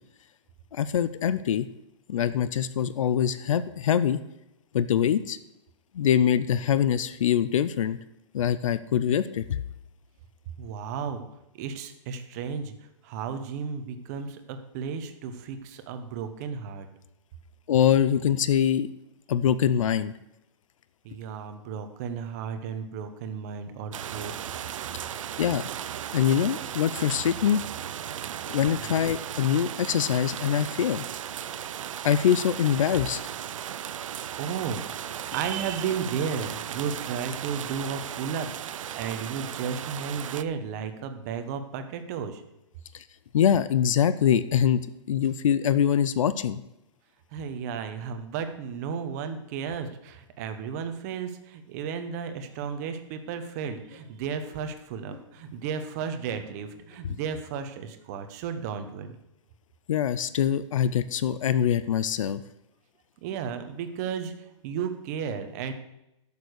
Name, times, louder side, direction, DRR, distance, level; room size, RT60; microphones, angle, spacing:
voice 1, 0.7-1.7 2.1-4.2 4.7-5.4 5.9-8.0 8.3-9.6 17.7-18.9 19.3-20.1 25.4-25.7 26.1-27.6 28.5-31.0 32.0-33.2 42.9-43.0 43.3-44.8 45.1-46.6 59.9-62.4, left 9 dB, 90° left, 15 dB, 0.6 m, -24 dB
voice 2, 10.6-11.2 11.5-16.9 21.0-24.5 28.7-29.0 33.5-34.0 34.4-34.8 35.3-38.5 38.9-42.4 47.3-59.2 63.2-65.7, right 6 dB, 30° right, 8 dB, 1.0 m, -34 dB
sound 1, 23.9-40.4, right 10 dB, 85° right, 0.6 m, -36 dB
sound 2, 52.7-52.8 53.3-53.5 53.9-54.2 54.5-54.6 55.1-55.4 55.7-55.8 56.3-56.5 56.9-57.0, left 3 dB, 25° left, 5.1 m, -53 dB
11.5 x 6.9 x 6.4 m, 0.89 s
hypercardioid pair, 170°, 16 cm